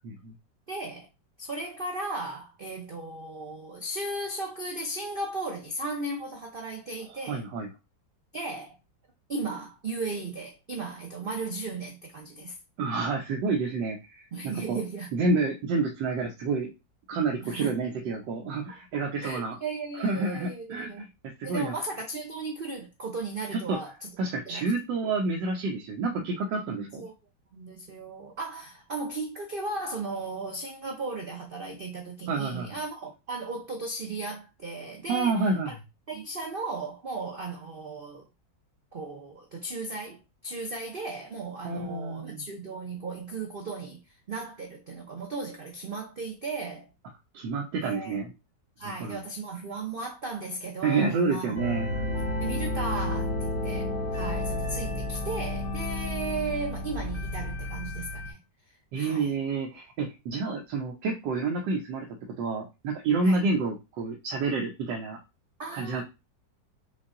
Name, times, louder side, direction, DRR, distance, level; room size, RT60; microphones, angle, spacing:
voice 1, 0.7-1.1 1.4-7.4 8.3-8.7 9.3-12.6 14.3-15.1 17.4-17.7 18.7-18.8 19.2-21.1 21.4-24.1 24.5-24.7 26.1-26.2 26.6-27.1 27.5-35.8 36.1-38.2 38.9-44.0 44.3-46.9 47.8-48.2 48.8-51.6 52.4-58.4 59.0-59.3 63.2-63.4 65.6-66.0, right 3 dB, 60° right, 0.5 m, -36 dB
voice 2, 7.2-7.7 12.8-14.8 15.1-16.7 17.1-19.6 19.9-21.0 21.4-21.7 23.5-23.8 24.2-27.0 32.3-32.8 35.1-35.7 41.6-42.5 47.3-48.3 48.8-49.2 50.8-52.2 54.9-55.0 58.9-62.1 62.4-65.2 65.7-66.0, right 3 dB, 85° right, 1.4 m, -29 dB
sound 1, 51.6-58.3, left 1 dB, 35° left, 1.2 m, -31 dB
5.6 x 2.3 x 3.7 m
omnidirectional pair, 1.9 m